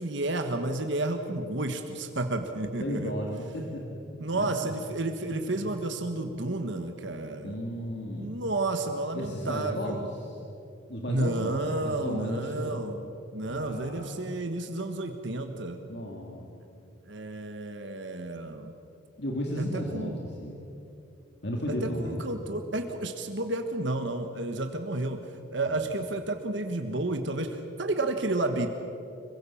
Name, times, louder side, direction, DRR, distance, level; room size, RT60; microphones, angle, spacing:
voice 1, 0.0-3.1 4.2-7.6 8.2-10.1 11.1-15.8 17.1-18.7 19.6-20.2 21.7-28.7, right 2 dB, 60° right, 6 dB, 1.5 m, -31 dB
voice 2, 2.8-4.0 4.3-4.7 5.3-5.7 7.4-8.3 9.1-10.4 10.9-12.8 13.4-14.1 15.9-16.5 19.2-20.6 21.4-22.2 25.7-25.8, equal, 55° left, -1 dB, 2.5 m, -34 dB
26.0 x 23.0 x 7.2 m, 2.8 s
head